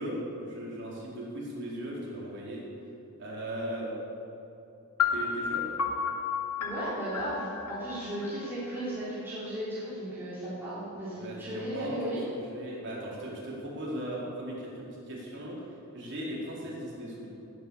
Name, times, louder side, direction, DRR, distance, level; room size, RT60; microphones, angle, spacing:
voice 1, 0.0-2.6 3.2-3.9 5.1-5.6 11.1-11.9 12.3-15.7 15.9-17.3, right 1 dB, 55° right, -5 dB, 4.2 m, -38 dB
sound 1, 5.0-8.8, left 6 dB, 85° left, 1.3 m, -32 dB
voice 2, 6.6-12.2, right 1 dB, 10° right, -11 dB, 3.4 m, -35 dB
18.0 x 8.4 x 7.2 m, 2.9 s
head